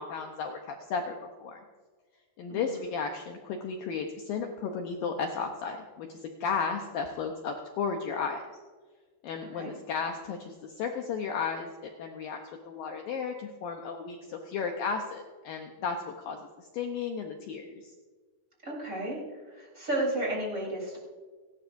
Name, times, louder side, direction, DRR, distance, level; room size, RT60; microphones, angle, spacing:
voice 1, 0.0-1.6 2.4-8.4 9.2-17.9, left 5 dB, 80° left, 3 dB, 2.0 m, -34 dB
voice 2, 2.5-2.8 9.4-9.7 18.6-19.2 19.5-21.0, right 1 dB, 20° right, -3 dB, 3.7 m, -33 dB
29.5 x 12.0 x 2.6 m, 1.4 s
omnidirectional pair, 5.3 m